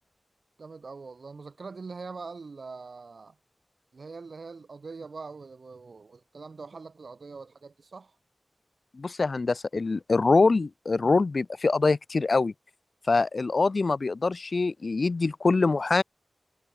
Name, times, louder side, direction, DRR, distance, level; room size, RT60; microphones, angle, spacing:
voice 1, 0.6-3.4 3.9-8.2, right 4 dB, 80° right, 2.2 m, -43 dB
voice 2, 8.9-12.5 13.1-16.0, left 3 dB, 65° left, 0.5 m, -24 dB
wide cardioid pair, 70°, 0 cm